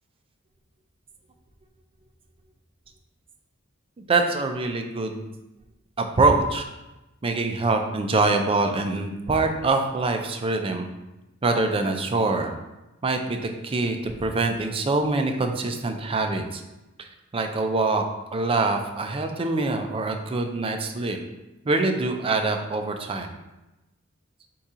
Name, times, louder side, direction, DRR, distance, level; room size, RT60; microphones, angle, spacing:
voice 1, 4.1-5.2 6.0-6.6 7.2-10.9 11.4-12.5 13.0-16.6 17.0-17.1 17.3-18.0 18.3-21.2 21.7-23.3, right 3 dB, 25° right, 5 dB, 0.4 m, -24 dB
4.5 x 2.8 x 3.7 m, 1.0 s
head